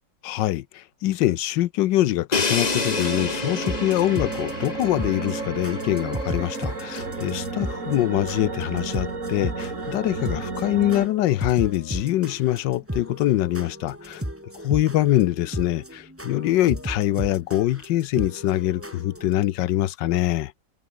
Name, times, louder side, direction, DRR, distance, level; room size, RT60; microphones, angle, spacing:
voice 1, 0.2-14.2 14.6-20.5, left 14 dB, 90° left, 1.4 m, -24 dB
Crash cymbal, 2.3-6.1, left 4 dB, 30° left, 1.0 m, -29 dB
sound 1, 2.6-11.1, right 3 dB, 45° right, 3.4 m, -32 dB
sound 2, 2.7-19.3, equal, 5° right, 5.6 m, -36 dB
omnidirectional pair, 1.9 m